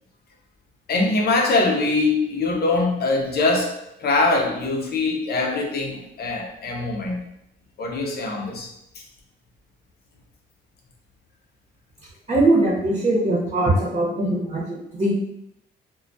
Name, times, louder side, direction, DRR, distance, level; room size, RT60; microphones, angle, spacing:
voice 1, 0.9-3.7 4.0-7.3 7.8-8.7, left 3 dB, 55° left, 0 dB, 0.6 m, -22 dB
voice 2, 12.3-15.1, right 2 dB, 30° right, -7 dB, 0.8 m, -21 dB
2.2 x 2.2 x 2.6 m, 0.80 s
cardioid pair, 90°, 20 cm